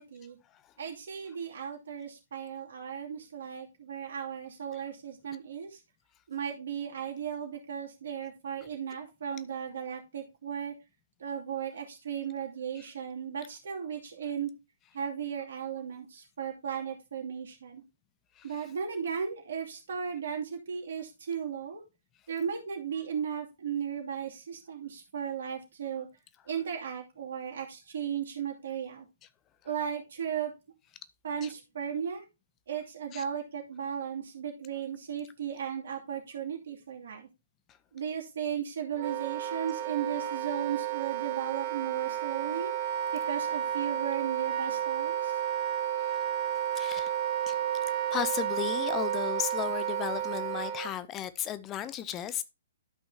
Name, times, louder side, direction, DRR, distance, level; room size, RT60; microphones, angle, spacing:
voice 1, 0.0-0.4 0.8-5.8 6.3-10.7 11.2-14.5 14.9-17.8 18.4-21.8 22.3-26.1 26.5-29.1 29.6-30.5 31.2-32.2 32.7-37.3 37.9-42.7 43.1-45.4, right 8 dB, 60° right, 2.7 m, -36 dB
Wind instrument woodwind instrument, 38.9-50.9, right 10 dB, 40° right, 1.2 m, -32 dB
voice 2, 46.7-47.1 47.5-47.6 48.1-52.4, left 11 dB, 20° left, 0.7 m, -35 dB
12.5 x 5.5 x 2.8 m
figure-of-eight pair, 125°, 0 cm